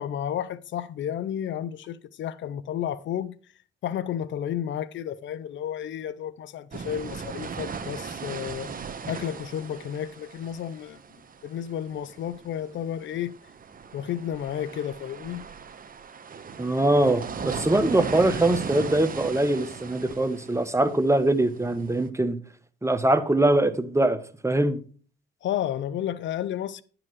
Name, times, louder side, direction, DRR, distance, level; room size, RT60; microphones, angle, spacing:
voice 1, 0.0-3.3 3.8-8.7 9.1-11.0 11.4-13.3 13.9-15.4 25.4-26.8, left 10 dB, 70° left, 0.6 m, -32 dB
sound 1, 6.7-22.1, right 5 dB, 45° right, 1.1 m, -38 dB
voice 2, 16.6-22.4 22.8-24.2 24.4-24.8, right 1 dB, 15° right, 1.3 m, -22 dB
10.5 x 4.9 x 6.2 m
supercardioid pair, 55°, 20 cm